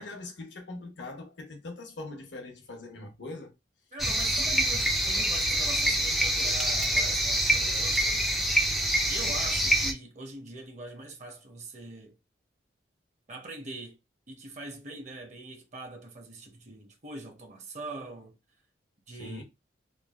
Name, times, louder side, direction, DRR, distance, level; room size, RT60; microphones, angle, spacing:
voice 1, 0.0-3.5 19.2-19.4, left 2 dB, 75° left, 0.8 m, -42 dB
voice 2, 3.9-8.3 9.1-12.2 13.3-14.0 14.3-18.4 19.1-19.4, right 2 dB, 40° right, 0.7 m, -42 dB
sound 1, 4.0-9.9, right 1 dB, ahead, 0.3 m, -26 dB
3.2 x 2.4 x 2.3 m
head